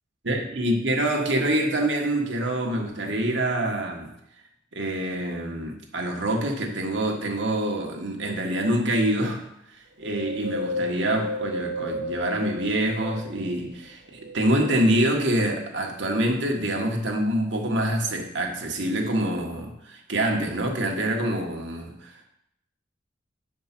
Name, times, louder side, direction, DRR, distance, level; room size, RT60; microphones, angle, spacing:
voice 1, 0.2-4.1 4.7-9.5 10.0-22.2, right 1 dB, 65° right, 2 dB, 1.4 m, -26 dB
Wind, 10.0-13.6 14.1-15.4 15.9-16.0, left 1 dB, 85° right, 1.2 m, -33 dB
7.0 x 5.1 x 5.9 m, 0.79 s
head